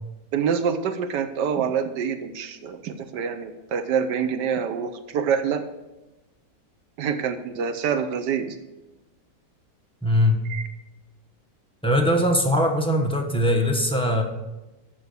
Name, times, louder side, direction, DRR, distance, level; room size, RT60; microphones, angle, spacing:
voice 1, 0.3-5.6 7.0-8.6 10.5-10.7, right 7 dB, 80° right, 9 dB, 1.4 m, -26 dB
voice 2, 10.0-10.4 11.8-14.2, left 1 dB, 5° left, 1 dB, 0.7 m, -21 dB
9.2 x 6.1 x 6.8 m, 1.1 s
omnidirectional pair, 1.8 m